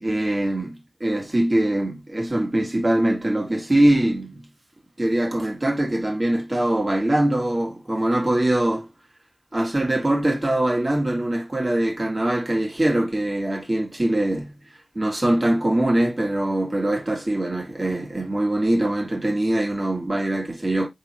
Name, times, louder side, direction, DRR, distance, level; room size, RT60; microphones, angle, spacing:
voice 1, 0.0-4.4 5.0-8.9 9.5-14.5 15.0-20.9, right 1 dB, 35° right, 1.7 m, -22 dB
3.7 x 3.0 x 4.3 m
wide cardioid pair, 45°, 0 cm